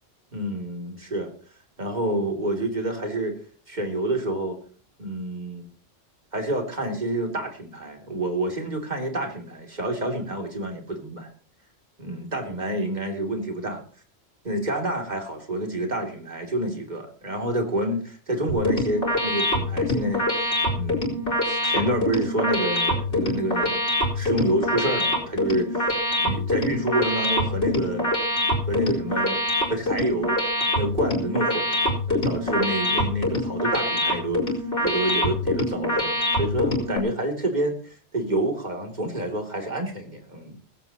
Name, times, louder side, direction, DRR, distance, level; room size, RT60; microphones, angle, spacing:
voice 1, 0.3-1.3 1.8-3.3 3.7-4.6 5.0-5.7 6.3-11.3 12.0-13.8 14.4-23.8 24.1-25.9 26.2-28.1 28.7-29.4 29.7-30.4 30.7-34.4 34.8-40.6, right 1 dB, 40° right, 3 dB, 3.1 m, -28 dB
sound 1, 18.5-37.0, left 1 dB, 85° left, 4.8 m, -25 dB
19.5 x 15.0 x 3.0 m, 0.41 s
omnidirectional pair, 1.2 m